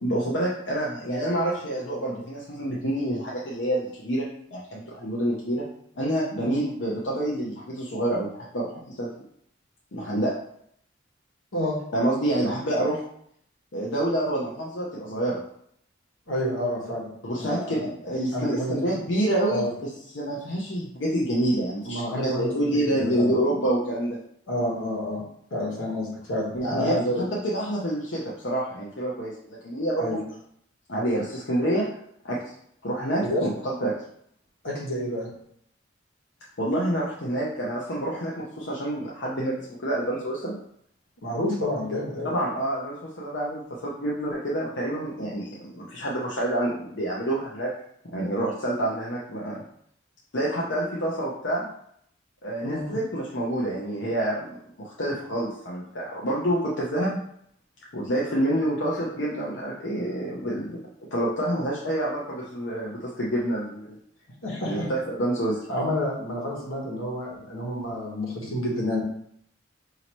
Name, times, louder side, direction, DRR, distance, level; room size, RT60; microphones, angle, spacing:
voice 1, 0.0-4.3 4.5-5.6 6.0-9.1 9.9-10.3 11.9-13.0 13.7-15.4 17.2-24.2 26.5-30.1 30.9-31.9 32.2-32.4 32.8-33.9 36.6-40.5 42.2-47.7 48.1-49.6 50.3-51.7 52.4-57.2 57.9-60.7 61.1-64.0 64.6-65.6, right 1 dB, 65° left, -4 dB, 0.7 m, -27 dB
voice 2, 16.3-17.1 17.4-17.7 18.3-18.8 19.5-19.7 21.8-22.5 22.8-23.3 24.5-25.2 25.5-27.2 30.0-30.2 33.2-33.5 34.6-35.3 41.2-42.3 52.6-53.0 64.4-64.9 65.7-69.0, left 1 dB, 85° left, -2 dB, 1.4 m, -29 dB
5.2 x 2.8 x 3.0 m, 0.69 s
head